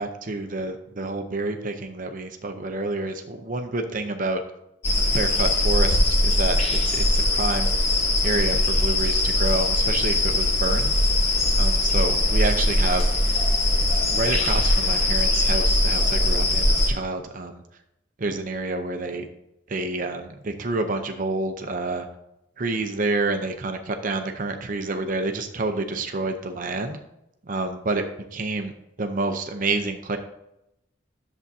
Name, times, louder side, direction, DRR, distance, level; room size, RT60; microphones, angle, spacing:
voice 1, 0.0-4.4 5.1-7.8 8.2-11.0 11.2-13.4 14.1-17.6 18.2-19.3 19.7-22.1 22.6-27.0 27.5-28.0 28.3-28.7 29.0-30.2, right 2 dB, 45° right, 6 dB, 0.6 m, -28 dB
sound 1, 4.8-16.9, left 1 dB, 30° left, 1.1 m, -21 dB
11.0 x 7.2 x 2.7 m, 0.84 s
head